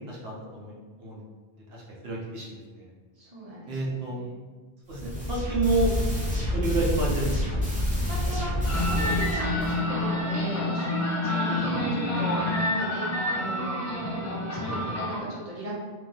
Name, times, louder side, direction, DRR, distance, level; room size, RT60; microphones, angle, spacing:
voice 1, 0.1-0.7 1.0-1.2 1.7-2.9 3.7-4.2 4.9-5.9 6.5-7.3, right 2 dB, 70° right, -4 dB, 1.0 m, -29 dB
voice 2, 3.2-4.3 7.9-13.0 13.3-13.9 14.5-15.8, right 1 dB, 35° right, -6 dB, 0.8 m, -36 dB
sound 1, 4.9-9.8, equal, 10° right, 0.8 m, -28 dB
sound 2, 8.6-15.2, left 1 dB, 30° left, 0.3 m, -28 dB
2.9 x 2.4 x 3.8 m, 1.4 s
omnidirectional pair, 1.1 m